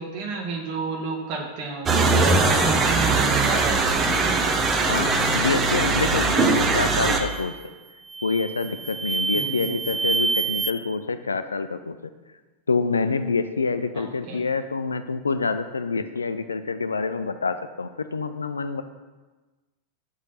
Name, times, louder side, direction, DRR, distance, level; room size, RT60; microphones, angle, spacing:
voice 1, 0.0-4.4 9.3-9.8 13.9-14.4, right 3 dB, 45° right, 1 dB, 1.6 m, -31 dB
sound 1, 1.9-7.2, right 3 dB, 25° right, 0.9 m, -21 dB
voice 2, 4.8-7.6 8.2-12.1 12.7-18.8, left 4 dB, 75° left, 11 dB, 0.4 m, -27 dB
sound 2, 6.3-6.6 7.1-7.6 8.1-10.7, right 4 dB, 5° right, 0.5 m, -28 dB
6.4 x 5.0 x 5.7 m, 1.3 s
figure-of-eight pair, 90°, 0 cm